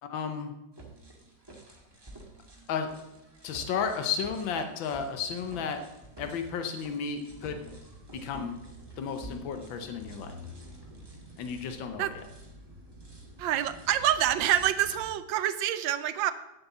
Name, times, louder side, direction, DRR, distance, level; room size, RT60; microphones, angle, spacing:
voice 1, 0.0-0.5 2.7-2.9 3.4-5.8 6.2-7.7 8.1-8.5 9.0-10.3 11.4-12.2, left 6 dB, 85° left, 7 dB, 1.7 m, -33 dB
sound 1, 0.7-15.1, right 1 dB, 15° right, 1.7 m, -48 dB
voice 2, 13.4-16.3, right 11 dB, 80° right, 13 dB, 1.4 m, -27 dB
9.5 x 7.7 x 7.1 m, 0.93 s
omnidirectional pair, 2.0 m